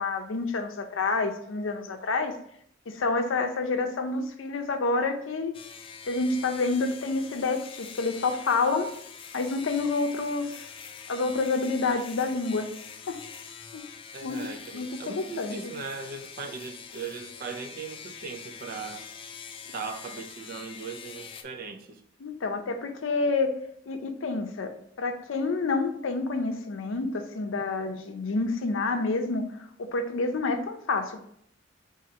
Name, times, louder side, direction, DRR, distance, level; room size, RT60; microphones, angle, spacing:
voice 1, 0.0-2.3 2.9-5.5 6.1-8.9 9.3-10.6 11.1-12.7 13.1-13.2 13.7-13.8 14.2-15.7 22.2-23.6 23.9-29.4 29.8-31.2, left 3 dB, 85° left, 0.5 m, -28 dB
sound 1, 5.5-21.4, left 6 dB, 30° left, 0.3 m, -44 dB
voice 2, 14.1-19.1 19.7-22.0, right 5 dB, 50° right, 0.4 m, -38 dB
3.7 x 2.8 x 4.2 m
head